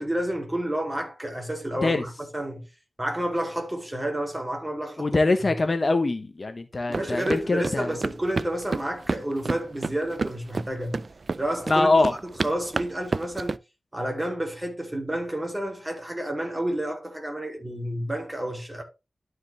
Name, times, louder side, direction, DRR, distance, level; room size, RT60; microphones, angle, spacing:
voice 1, 0.0-2.7 3.0-5.5 6.9-11.0 11.4-13.6 13.9-18.8, right 1 dB, 15° right, 2.6 m, -30 dB
voice 2, 5.0-8.0 11.7-12.1, left 2 dB, 45° left, 1.1 m, -23 dB
sound 1, 6.9-13.6, right 3 dB, 55° right, 0.4 m, -30 dB
12.0 x 4.8 x 3.1 m
wide cardioid pair, 70°, 0 cm